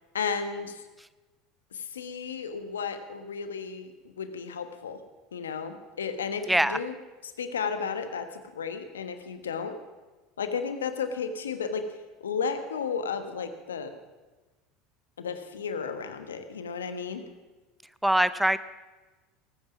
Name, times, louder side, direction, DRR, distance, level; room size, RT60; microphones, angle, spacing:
voice 1, 0.1-0.8 1.7-5.0 5.3-6.9 7.2-9.8 10.4-11.9 12.2-13.9 15.2-17.2, left 6 dB, 90° left, 9 dB, 1.2 m, -33 dB
voice 2, 6.5-6.8 18.0-18.6, right 1 dB, 5° right, 15 dB, 0.7 m, -23 dB
19.5 x 9.4 x 6.0 m, 1.2 s
hypercardioid pair, 80°, 0 cm